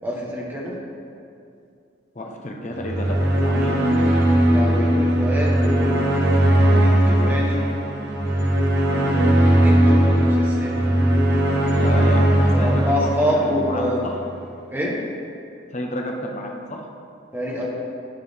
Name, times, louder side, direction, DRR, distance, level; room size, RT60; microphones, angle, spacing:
voice 1, 0.0-0.8 4.5-6.1 6.7-7.6 9.4-10.9 12.5-14.1 14.7-15.0 17.3-17.7, equal, 10° right, -3 dB, 1.1 m, -26 dB
voice 2, 2.1-3.2 3.4-3.8 11.7-13.1 13.4-14.1 15.7-16.8, left 1 dB, 35° left, 1 dB, 0.8 m, -30 dB
sound 1, 2.8-14.1, right 1 dB, 55° right, 1.1 m, -19 dB
11.5 x 4.5 x 3.5 m, 2.5 s
head